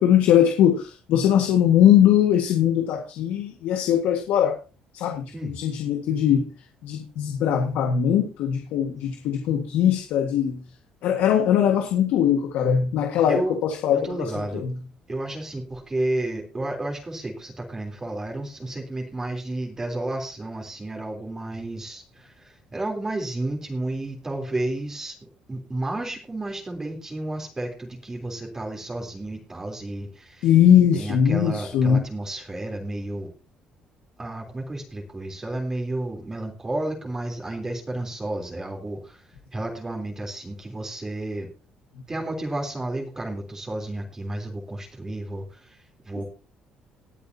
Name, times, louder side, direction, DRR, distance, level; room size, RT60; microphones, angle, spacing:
voice 1, 0.0-4.6 4.9-6.5 6.8-10.6 11.0-14.8 30.4-32.0, left 9 dB, 80° left, 1.7 m, -20 dB
voice 2, 13.3-13.6 14.0-14.7 15.1-30.5 30.9-33.3 34.2-41.5 42.1-46.2, right 2 dB, 20° right, 3.5 m, -32 dB
19.5 x 8.5 x 2.8 m
cardioid pair, 115°, 3 cm